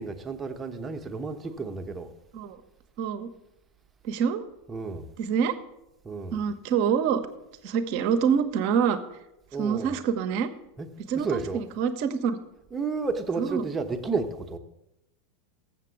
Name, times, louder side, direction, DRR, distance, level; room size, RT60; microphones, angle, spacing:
voice 1, 0.0-2.1 4.7-5.1 6.0-6.4 9.5-10.0 10.8-10.9 11.1-11.7 12.7-14.6, right 4 dB, 20° right, 0.9 m, -32 dB
voice 2, 3.0-3.3 4.0-4.4 5.2-5.5 6.3-7.2 7.6-9.0 9.6-10.5 11.1-12.4 13.4-13.6, right 7 dB, 50° right, 0.8 m, -26 dB
7.5 x 6.6 x 8.0 m
figure-of-eight pair, 85°, 0 cm